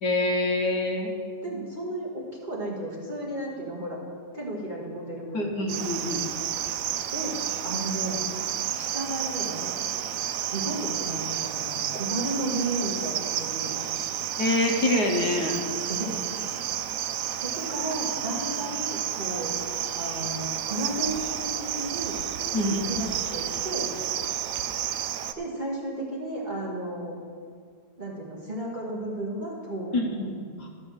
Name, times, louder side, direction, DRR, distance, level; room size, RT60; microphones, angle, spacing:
voice 1, 0.0-1.1 5.3-6.3 14.4-15.6 22.5-22.8 29.9-30.7, left 2 dB, 65° left, 2 dB, 1.5 m, -26 dB
voice 2, 1.4-4.0 4.3-5.6 7.1-7.4 7.6-8.2 8.7-9.7 10.4-13.8 15.9-16.2 17.1-19.5 19.9-22.2 22.6-23.9 25.4-27.2 28.0-30.3, right 1 dB, 25° right, -4 dB, 1.9 m, -33 dB
Cricket, 5.7-25.3, right 10 dB, 85° right, 0.7 m, -31 dB
12.5 x 6.2 x 6.4 m, 2.1 s
omnidirectional pair, 2.0 m